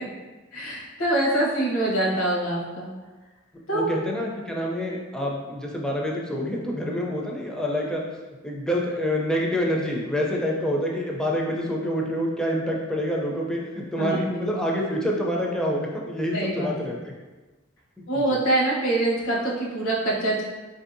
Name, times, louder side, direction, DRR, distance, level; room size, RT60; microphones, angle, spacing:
voice 1, 0.5-2.9 3.7-3.9 14.0-14.5 16.3-16.7 18.1-20.4, right 1 dB, 75° left, -3 dB, 0.9 m, -24 dB
voice 2, 3.7-8.0 8.4-17.0 18.1-18.4, equal, 5° left, -2 dB, 0.4 m, -27 dB
3.8 x 2.6 x 2.6 m, 1.2 s
head